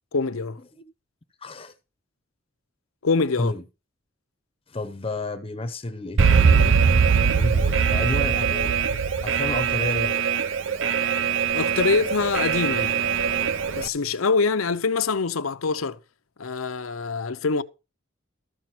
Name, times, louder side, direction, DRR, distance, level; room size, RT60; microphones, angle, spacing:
voice 1, 0.1-0.6 3.0-3.5 11.5-13.0 13.7-16.0 16.4-17.6, left 4 dB, 85° left, 0.7 m, -24 dB
voice 2, 1.4-1.7 3.4-3.6 4.7-6.8 7.3-8.7 9.2-10.2, left 2 dB, 25° left, 0.7 m, -31 dB
Alarm, 6.2-13.9, right 6 dB, 65° right, 0.6 m, -21 dB
14.0 x 5.1 x 6.0 m
head